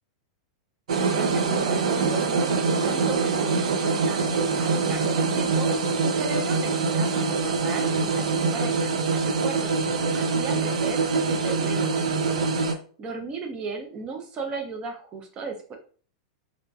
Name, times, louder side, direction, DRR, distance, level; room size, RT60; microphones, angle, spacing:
sound 1, 0.9-12.7, right 4 dB, 90° right, 0.4 m, -24 dB
voice 1, 1.1-5.7 6.0-9.7 10.1-12.5 13.0-15.8, right 4 dB, 25° right, 3 dB, 0.6 m, -36 dB
2.8 x 2.5 x 2.2 m, 0.41 s
supercardioid pair, 140°, 3 cm